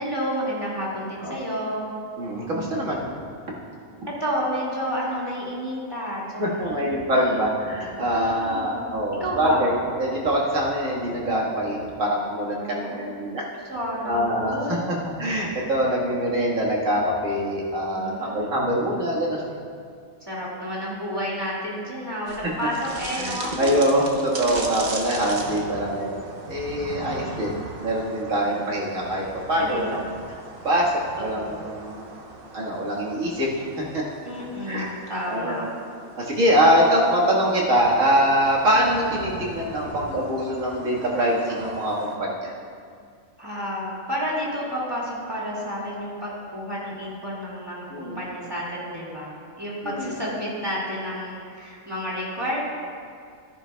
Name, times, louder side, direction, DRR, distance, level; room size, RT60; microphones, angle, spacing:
voice 1, 0.0-1.9 4.1-7.5 8.1-8.9 9.2-9.7 12.6-13.1 13.7-15.0 17.9-18.6 20.2-23.6 25.6-26.2 27.0-27.6 28.5-28.6 29.6-30.0 31.3-31.7 34.2-35.7 43.4-52.6, equal, 20° right, -6 dB, 2.0 m, -31 dB
voice 2, 2.2-3.0 6.4-13.5 14.0-19.6 22.4-22.5 23.2-30.0 30.3-30.4 30.6-30.9 31.2-32.1 32.5-33.5 33.8-34.0 34.7-34.9 35.3-35.7 36.2-42.5 47.9-48.2 49.8-50.2, equal, 75° right, -4 dB, 2.1 m, -24 dB
sound 1, 22.3-42.2, right 2 dB, 45° right, 1.1 m, -39 dB
14.5 x 9.8 x 2.3 m, 2.2 s
omnidirectional pair, 1.4 m